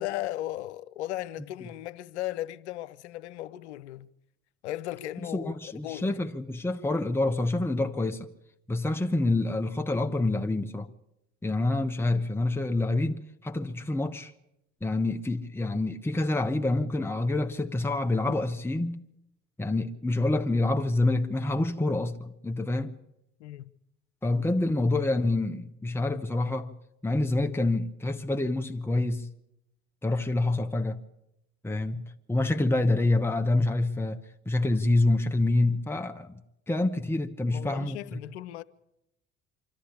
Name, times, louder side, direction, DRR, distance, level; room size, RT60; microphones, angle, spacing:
voice 1, 0.0-4.1 4.6-5.6 5.8-6.1 23.4-23.7 37.5-38.6, left 14 dB, 75° left, 0.7 m, -36 dB
voice 2, 5.3-8.3 8.7-10.9 11.4-14.3 14.8-19.0 19.6-22.9 24.2-26.7 27.0-29.3 30.0-31.0 31.6-36.4 36.7-38.2, left 2 dB, 5° left, 1.1 m, -27 dB
25.0 x 13.0 x 8.5 m
figure-of-eight pair, 55°, 34 cm